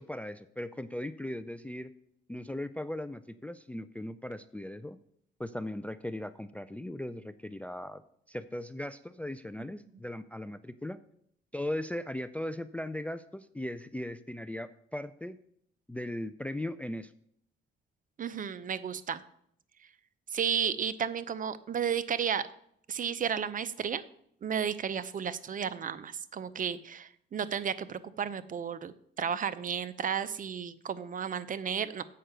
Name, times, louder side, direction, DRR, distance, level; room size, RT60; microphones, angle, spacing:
voice 1, 0.0-1.9 2.3-5.0 5.4-8.0 8.3-11.0 11.5-15.4 15.9-17.1, left 1 dB, 5° left, 13 dB, 0.3 m, -38 dB
voice 2, 18.2-19.2 20.3-22.5 22.9-24.0 24.4-32.0, right 7 dB, 40° right, 15 dB, 0.6 m, -33 dB
7.5 x 5.6 x 6.7 m, 0.70 s
cardioid pair, 90°, 20 cm